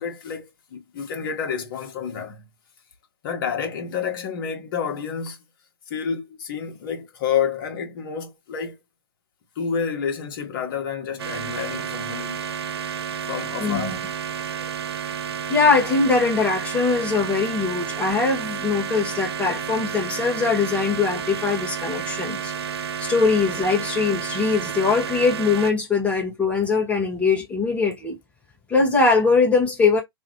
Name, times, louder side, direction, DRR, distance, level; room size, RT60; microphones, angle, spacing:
voice 1, 0.0-2.5 3.2-5.4 5.9-8.8 9.5-12.4 13.3-14.0, left 7 dB, 50° left, 1.7 m, -29 dB
sound 1, 11.2-25.7, right 8 dB, 75° right, 0.9 m, -31 dB
voice 2, 13.6-14.0 15.5-22.5 23.0-28.2 28.7-30.0, left 4 dB, 10° left, 2.2 m, -21 dB
3.4 x 3.0 x 4.0 m
hypercardioid pair, 135°, 13 cm